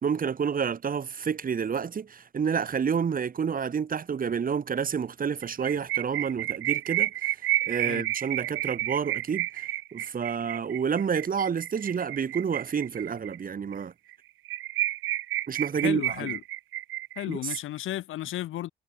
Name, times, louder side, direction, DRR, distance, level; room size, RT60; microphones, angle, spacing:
voice 1, 0.0-7.4 7.7-13.9 15.5-16.3 17.3-17.6, right 6 dB, 45° right, 3.6 m, -29 dB
sound 1, 5.4-13.4 13.7-13.8 14.1-14.2 14.5-17.6, right 15 dB, 90° right, 5.3 m, -31 dB
voice 2, 15.8-16.4 17.2-18.7, left 14 dB, 85° left, 4.7 m, -33 dB
cardioid pair, 90°, 20 cm